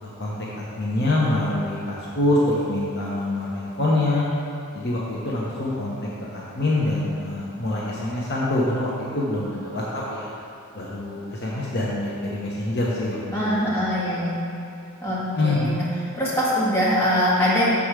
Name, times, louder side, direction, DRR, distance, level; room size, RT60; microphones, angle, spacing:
voice 1, 0.0-4.2 4.7-6.0 6.3-10.3 10.7-13.7 15.3-15.7, left 2 dB, 50° left, -6 dB, 1.0 m, -25 dB
voice 2, 13.3-14.4 15.0-15.8 16.1-17.7, equal, 10° left, -9 dB, 1.9 m, -22 dB
7.0 x 5.0 x 6.1 m, 2.6 s
head